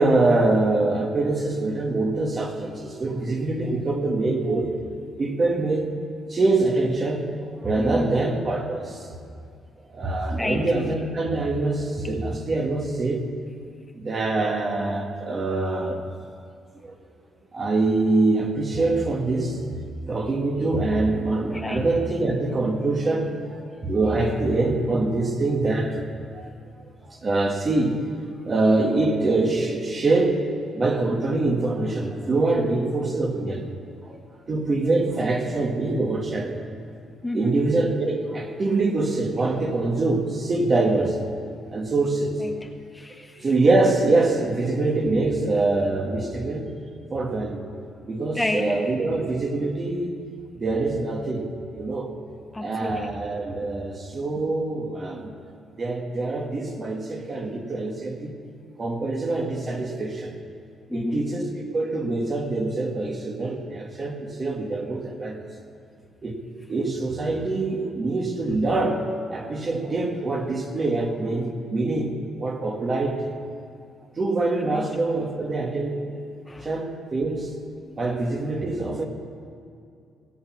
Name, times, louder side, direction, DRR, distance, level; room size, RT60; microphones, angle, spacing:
voice 1, 0.0-4.7 5.2-5.9 6.3-9.1 9.9-13.3 13.9-16.0 16.7-16.9 17.5-19.6 20.1-26.0 26.3-26.5 27.1-28.0 28.4-30.4 30.7-33.7 34.0-34.2 34.5-36.6 37.3-41.2 41.7-42.4 43.4-46.7 47.1-47.7 48.0-50.2 50.5-52.1 52.6-55.3 55.8-58.4 58.8-60.4 60.9-65.4 66.2-66.4 66.7-73.3 74.2-76.2 76.6-77.5 78.0-79.1, right 2 dB, 35° right, 3 dB, 1.6 m, -24 dB
voice 2, 4.7-5.1 7.8-8.1 10.4-10.7 21.5-22.0 37.2-37.6 42.4-43.5 48.3-48.8 52.5-53.1 60.9-61.2 74.6-74.9 76.5-76.7, left 2 dB, 15° left, 5 dB, 0.8 m, -31 dB
17.0 x 8.2 x 6.0 m, 2.4 s
cardioid pair, 90°, 0 cm